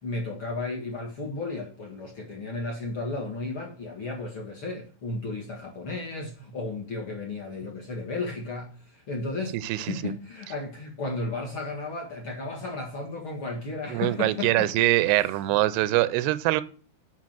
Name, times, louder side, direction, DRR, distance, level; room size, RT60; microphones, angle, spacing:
voice 1, 0.0-14.7 15.2-15.9, left 3 dB, 50° left, 1.6 m, -34 dB
voice 2, 9.5-10.1 13.9-16.6, right 16 dB, 90° right, 2.6 m, -24 dB
7.5 x 5.8 x 7.5 m
omnidirectional pair, 4.6 m